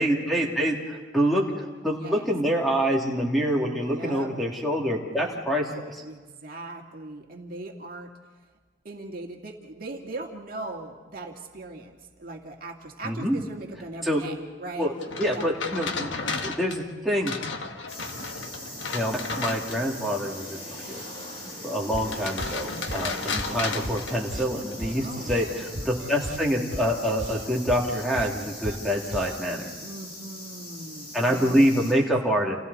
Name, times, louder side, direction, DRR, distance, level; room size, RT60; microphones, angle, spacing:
voice 1, 0.0-6.0 13.0-13.4 14.0-14.2 14.8-14.9 15.2-16.1 16.4-17.3 18.9-20.6 20.9-21.0 21.6-29.7 31.1-32.6, equal, ahead, -2 dB, 2.7 m, -26 dB
voice 2, 1.9-2.3 3.7-4.3 5.1-5.4 6.0-8.1 8.8-14.9 15.3-15.6 21.4-21.6 22.7-23.0 25.0-26.1 29.8-31.9, right 2 dB, 50° right, 1 dB, 2.1 m, -40 dB
sound 1, 15.0-20.1 22.0-24.7, left 4 dB, 85° left, 1.5 m, -33 dB
sound 2, 17.9-31.9, left 1 dB, 35° left, 7.3 m, -41 dB
sound 3, 21.9-29.5, right 1 dB, 70° right, 1.9 m, -37 dB
29.5 x 28.5 x 4.2 m, 1.4 s
head